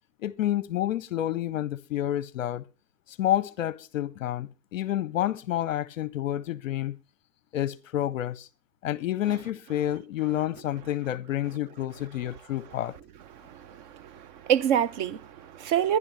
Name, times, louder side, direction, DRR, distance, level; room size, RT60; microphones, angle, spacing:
voice 1, 0.2-2.6 3.2-7.0 7.5-8.5 8.8-13.0, left 12 dB, 55° left, 0.7 m, -29 dB
voice 2, 13.3-16.0, right 9 dB, 30° right, 0.6 m, -27 dB
22.5 x 11.0 x 3.1 m
figure-of-eight pair, 115°, 49 cm